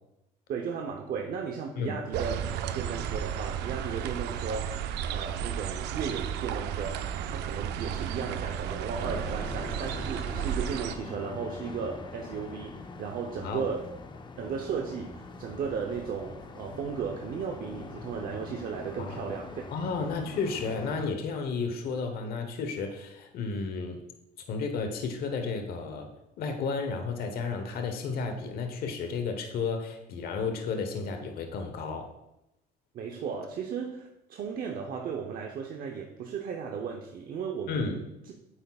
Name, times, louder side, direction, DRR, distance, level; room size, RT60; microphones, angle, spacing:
voice 1, 0.5-2.4 2.7-4.8 5.1-13.9 14.4-19.6 20.0-20.1 32.9-38.0, right 6 dB, 60° right, 2 dB, 0.8 m, -35 dB
sound 1, 2.1-11.0, right 9 dB, 85° right, 0.5 m, -33 dB
sound 2, 9.0-21.1, left 4 dB, 25° left, 0.6 m, -43 dB
voice 2, 19.0-19.3 19.7-24.0 24.5-26.1 26.4-32.1 37.7-38.0, left 4 dB, 65° left, 5 dB, 1.0 m, -32 dB
8.9 x 7.9 x 2.4 m, 0.87 s
cardioid pair, 110°, 17 cm